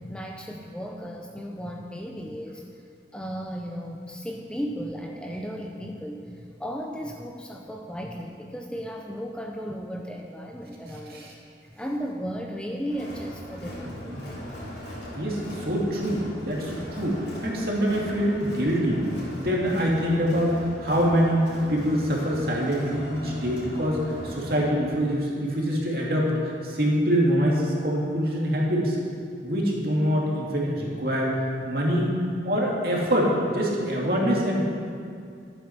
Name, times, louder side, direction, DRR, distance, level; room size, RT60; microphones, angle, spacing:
voice 1, 0.0-2.6 3.1-11.3 11.6-14.4, equal, 5° left, 1 dB, 0.6 m, -35 dB
Crowd, 12.9-24.6, left 1 dB, 65° left, 3.7 m, -39 dB
voice 2, 15.1-19.0 19.3-29.0 29.4-31.4 31.6-32.2 32.4-34.7, equal, 55° right, -3 dB, 2.5 m, -25 dB
13.0 x 8.9 x 6.0 m, 2.4 s
head